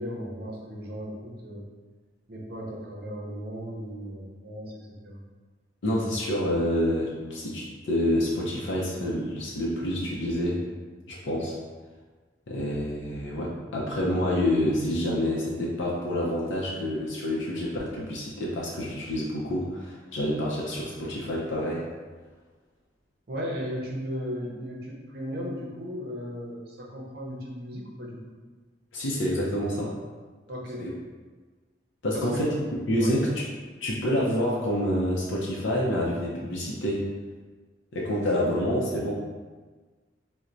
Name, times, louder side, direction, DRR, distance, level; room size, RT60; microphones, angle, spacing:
voice 1, 0.0-1.6 2.3-5.2 23.3-28.3 30.5-30.9 32.1-32.5 33.0-33.2, equal, 55° right, -2 dB, 0.6 m, -36 dB
voice 2, 5.8-10.6 11.1-11.6 12.5-21.9 28.9-29.9 30.8-30.9 32.0-32.5 32.9-33.3 33.8-37.1 37.9-39.1, left 1 dB, 85° left, -4 dB, 0.5 m, -27 dB
4.2 x 2.1 x 2.5 m, 1.4 s
head